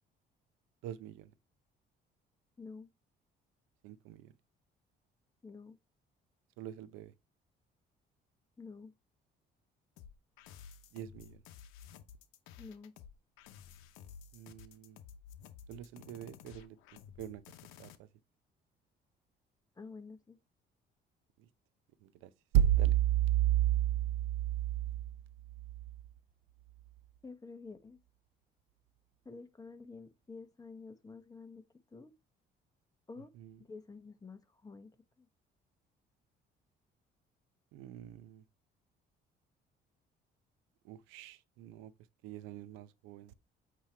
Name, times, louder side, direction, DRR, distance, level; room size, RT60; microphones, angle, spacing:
voice 1, 0.8-1.3 3.8-4.3 6.6-7.1 10.9-11.4 14.3-15.0 15.7-16.8 17.2-17.4 17.8-18.1 21.4-21.5 22.0-25.0 33.3-33.6 37.7-38.4 40.8-41.9 42.2-43.3, right 12 dB, 90° right, 0.7 m, -33 dB
voice 2, 2.6-2.9 5.4-5.8 8.6-8.9 12.6-13.0 19.7-20.4 27.2-28.0 29.2-31.6 31.9-32.1 33.1-33.3 33.6-35.3, left 4 dB, 20° left, 1.3 m, -49 dB
sound 1, 10.0-18.0, left 8 dB, 90° left, 0.8 m, -53 dB
8.3 x 3.0 x 4.5 m
supercardioid pair, 75°, 20 cm